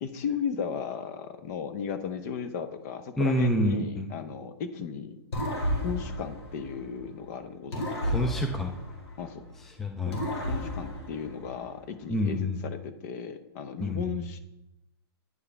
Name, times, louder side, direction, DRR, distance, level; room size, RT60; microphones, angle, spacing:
voice 1, 0.0-5.2 5.8-8.1 9.2-9.4 10.1-14.4, left 7 dB, 40° left, 10 dB, 0.7 m, -35 dB
voice 2, 3.2-4.1 8.0-8.7 9.6-10.2 12.1-12.6 13.8-14.1, left 1 dB, ahead, 3 dB, 0.3 m, -27 dB
sound 1, 5.3-7.2 7.7-9.6 10.1-11.8, equal, 85° left, 1.7 m, -33 dB
9.5 x 4.7 x 3.3 m, 0.90 s
hypercardioid pair, 150°, 14 cm